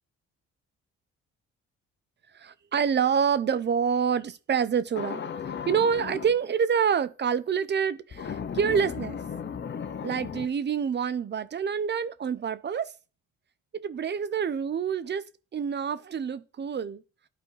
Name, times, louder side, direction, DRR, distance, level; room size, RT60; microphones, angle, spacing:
voice 1, 2.3-5.2 5.7-9.2 10.0-12.9 13.7-15.3 15.5-17.0, right 7 dB, 35° right, 0.6 m, -27 dB
sound 1, 4.9-6.4 8.1-10.5, left 7 dB, 40° left, 0.7 m, -35 dB
12.0 x 4.1 x 3.2 m
cardioid pair, 90°, 30 cm